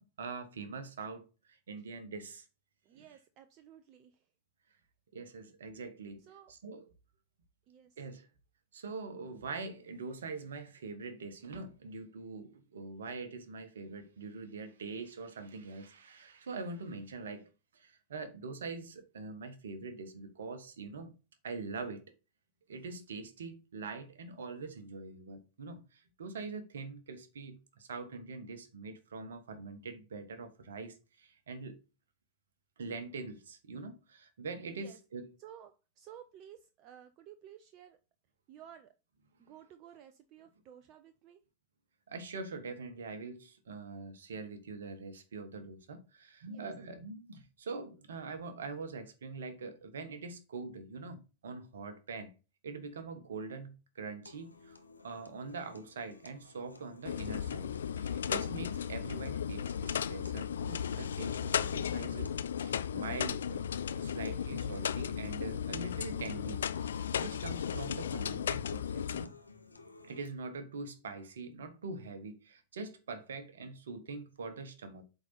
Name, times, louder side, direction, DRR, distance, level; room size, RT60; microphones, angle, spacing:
voice 1, 0.0-2.4 2.9-3.1 5.1-6.8 8.0-8.3 8.7-21.1 21.4-22.1 22.7-31.8 32.8-35.3 42.1-52.3 52.6-63.6 63.9-69.3 70.0-75.0, right 4 dB, 65° right, 1.2 m, -43 dB
voice 2, 2.8-4.3 6.2-6.5 7.7-8.0 34.7-35.0 35.4-38.0 38.5-38.9 39.4-41.4 46.5-46.7, right 10 dB, 40° right, 0.6 m, -54 dB
sound 1, 54.3-70.3, left 3 dB, 80° left, 0.8 m, -56 dB
sound 2, 57.1-69.3, left 8 dB, 65° left, 0.4 m, -35 dB
8.1 x 4.0 x 4.2 m
figure-of-eight pair, 90°, 0 cm